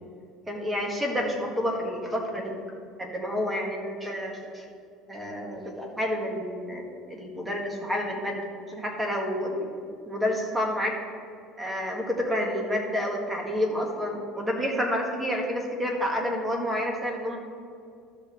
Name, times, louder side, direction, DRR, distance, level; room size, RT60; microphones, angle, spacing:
voice 1, 0.5-2.6 3.0-4.6 5.1-6.8 7.1-9.7 10.1-10.9 11.6-17.4, equal, 10° right, 0 dB, 1.6 m, -29 dB
13.0 x 6.5 x 3.2 m, 2.3 s
cardioid pair, 130°, 0 cm